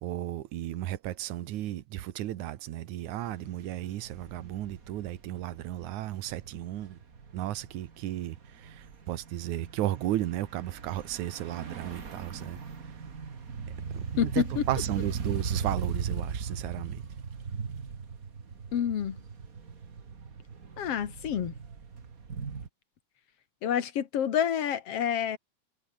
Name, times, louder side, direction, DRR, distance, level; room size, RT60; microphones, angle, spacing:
voice 1, 0.0-7.0 7.3-12.6 13.9-17.0, right 13 dB, 85° right, 2.5 m, -34 dB
sound 1, 3.2-22.7, right 5 dB, 35° right, 1.9 m, -39 dB
voice 2, 14.2-14.6 18.7-19.2 20.8-21.5 23.6-25.4, left 9 dB, 60° left, 2.5 m, -28 dB
omnidirectional pair, 3.3 m